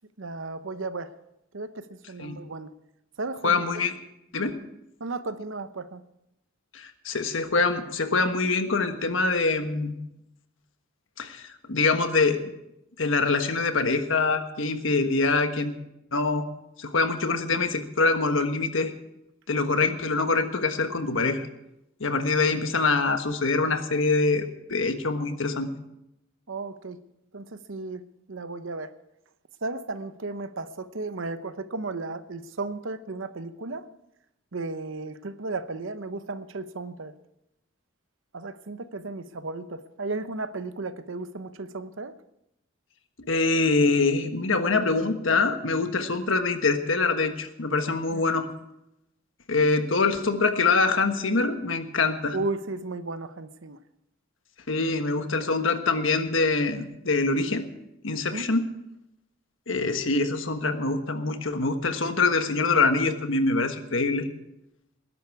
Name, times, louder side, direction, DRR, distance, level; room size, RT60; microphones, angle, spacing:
voice 1, 0.2-1.1 1.5-2.7 3.2-3.6 5.0-6.0 26.5-27.0 27.3-28.0 28.3-28.9 29.6-33.9 34.5-37.1 38.3-42.1 48.1-48.2 52.3-53.8 58.3-58.5, right 3 dB, 65° right, 12 dB, 0.8 m, -34 dB
voice 2, 3.4-3.9 4.3-4.6 6.7-9.9 11.2-12.4 13.0-15.7 16.1-16.4 16.8-18.9 19.5-21.5 22.0-25.7 43.3-48.5 49.5-52.4 54.7-57.7 58.0-58.7 59.7-64.3, left 3 dB, 70° left, 7 dB, 1.4 m, -24 dB
20.0 x 11.5 x 4.8 m, 0.85 s
head